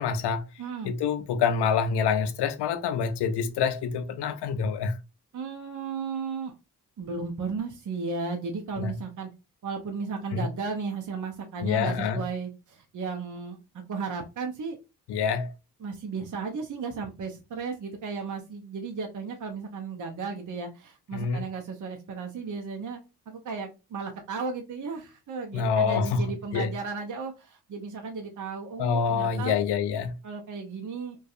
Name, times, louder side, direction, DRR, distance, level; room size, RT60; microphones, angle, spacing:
voice 1, 0.0-0.4 0.8-5.0 8.8-9.0 10.3-10.5 11.6-12.2 15.1-15.5 21.1-21.4 25.5-26.2 26.5-26.7 28.8-30.1, left 6 dB, 85° left, 0.5 m, -26 dB
voice 2, 0.6-0.9 5.3-6.5 7.0-9.3 9.6-14.8 15.8-23.0 23.3-29.6 30.2-31.2, right 4 dB, 50° right, 0.6 m, -35 dB
2.6 x 2.3 x 2.4 m
cardioid pair, 50°, 39 cm